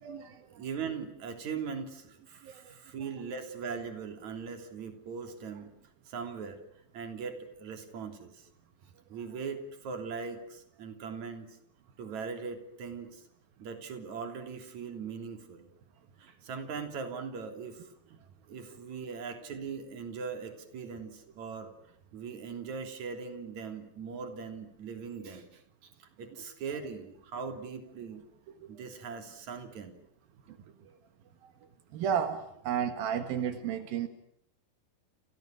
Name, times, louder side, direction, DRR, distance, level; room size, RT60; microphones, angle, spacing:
voice 1, 0.0-0.6 2.4-2.7 18.5-18.6 28.5-28.7 30.5-31.0 31.4-31.5 31.9-34.1, right 8 dB, 85° right, 8 dB, 3.6 m, -34 dB
voice 2, 0.6-5.7 6.1-6.6 6.9-8.5 9.1-11.6 12.0-13.2 13.6-15.7 16.2-17.9 18.5-21.7 22.1-28.2 28.7-30.0, right 5 dB, 55° right, 6 dB, 4.5 m, -40 dB
29.5 x 29.5 x 6.6 m, 0.69 s
omnidirectional pair, 4.1 m